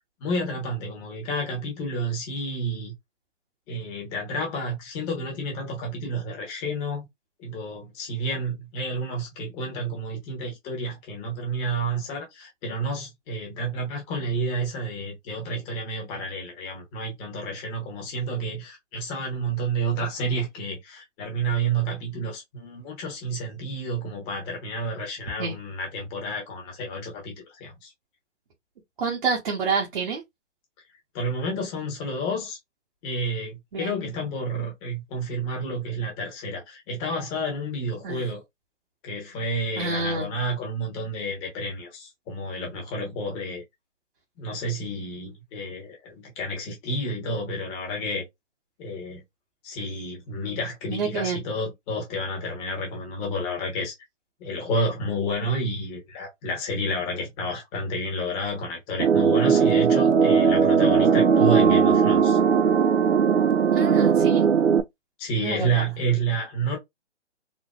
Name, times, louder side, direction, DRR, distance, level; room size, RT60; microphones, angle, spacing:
voice 1, 0.2-2.9 3.7-7.0 7.4-27.3 27.6-27.9 31.1-32.6 33.0-38.4 39.0-43.6 44.4-48.2 48.8-49.2 49.6-53.9 54.4-62.4 65.2-66.8, right 1 dB, 15° left, 1.2 m, -30 dB
voice 2, 29.0-30.2 33.7-33.9 38.0-38.2 39.8-40.3 50.9-51.4 63.7-64.5 65.3-65.9, right 5 dB, 40° right, 1.2 m, -28 dB
sound 1, 59.0-64.8, right 6 dB, 70° right, 0.7 m, -19 dB
4.0 x 2.9 x 2.3 m
hypercardioid pair, 150°, 37 cm